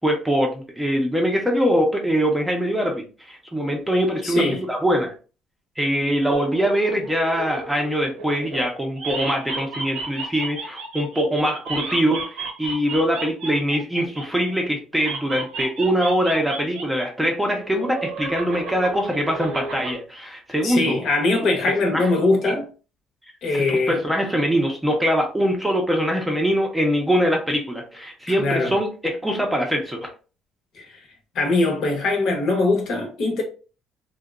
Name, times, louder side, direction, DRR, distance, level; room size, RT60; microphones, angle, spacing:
voice 1, 0.0-5.1 5.8-21.0 21.6-22.1 22.4-22.5 23.5-30.0, equal, 5° right, 0.6 m, -23 dB
voice 2, 4.2-4.6 20.6-22.7 23.4-24.0 28.4-28.7 30.7-31.0 31.3-33.4, left 2 dB, 55° left, 0.8 m, -21 dB
sound 1, 6.3-8.7 9.0-14.5 15.0-17.1 17.3-19.9, right 3 dB, 85° right, 0.8 m, -33 dB
2.7 x 2.1 x 2.4 m
cardioid pair, 120°, 0 cm